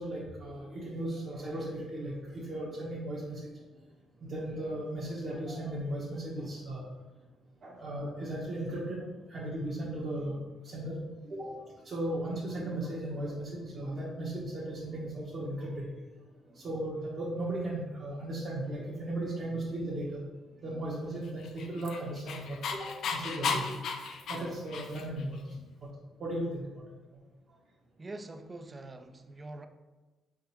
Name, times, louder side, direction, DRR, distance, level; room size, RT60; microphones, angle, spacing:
voice 1, 0.0-3.5 4.2-6.8 7.6-11.0 11.2-15.9 16.5-20.2 20.6-23.8 24.3-25.6 26.2-26.8, right 1 dB, 50° right, -6 dB, 1.1 m, -36 dB
Dog, 21.4-25.2, left 5 dB, 70° left, 0.5 m, -35 dB
voice 2, 28.0-29.7, right 2 dB, 25° right, 8 dB, 0.4 m, -44 dB
4.4 x 3.6 x 2.9 m, 1.2 s
cardioid pair, 90°, 0 cm